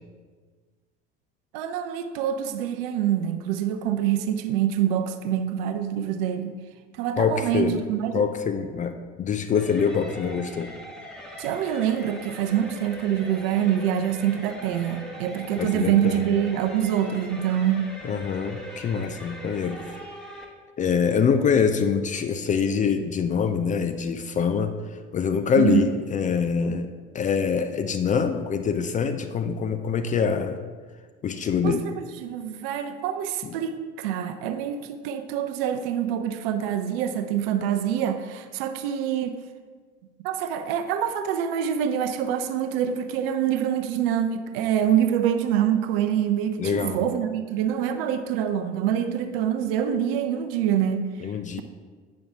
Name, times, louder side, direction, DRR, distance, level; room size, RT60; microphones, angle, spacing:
voice 1, 1.5-6.6 7.0-8.2 11.4-17.8 25.5-25.9 31.6-39.4 40.2-51.1, right 9 dB, 55° right, 9 dB, 0.7 m, -25 dB
voice 2, 7.2-7.8 8.1-10.7 15.6-16.3 18.0-19.8 20.8-24.7 25.1-26.9 27.1-30.6 31.2-31.9 33.4-33.5 46.6-47.0 51.2-51.6, left 6 dB, 20° left, 8 dB, 0.5 m, -24 dB
sound 1, 9.5-20.4, equal, ahead, 1.3 m, -41 dB
8.7 x 6.0 x 3.6 m, 1.5 s
figure-of-eight pair, 65°, 35 cm